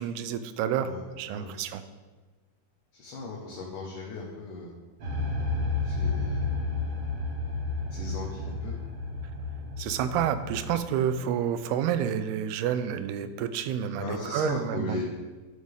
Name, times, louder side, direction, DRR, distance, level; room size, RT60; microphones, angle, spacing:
voice 1, 0.0-0.9 1.2-1.8 9.8-15.1, right 9 dB, 90° right, 11 dB, 2.6 m, -29 dB
voice 2, 0.8-1.6 2.9-4.7 5.8-6.6 7.9-8.8 10.7-10.8 14.0-15.1, left 3 dB, 65° left, -4 dB, 2.5 m, -37 dB
sound 1, 5.0-10.8, left 3 dB, 50° right, 1.7 m, -31 dB
12.5 x 7.5 x 3.6 m, 1.3 s
omnidirectional pair, 4.5 m